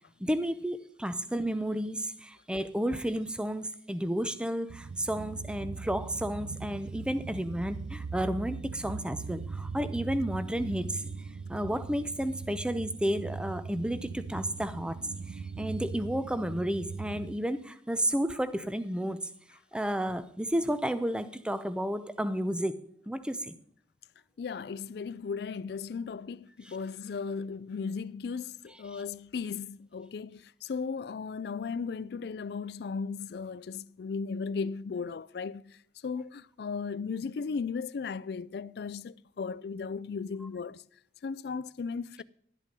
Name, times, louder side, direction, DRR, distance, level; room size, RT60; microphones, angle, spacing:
voice 1, 0.2-11.0 11.5-15.0 15.3-19.2 19.7-22.8 23.1-23.5 26.6-26.8 28.9-29.0, equal, 5° right, 0.6 m, -32 dB
sound 1, 4.7-17.3, right 4 dB, 60° right, 0.4 m, -40 dB
voice 2, 24.4-35.6 36.0-40.8 41.2-42.2, left 5 dB, 60° left, 0.4 m, -36 dB
12.0 x 8.2 x 5.2 m
head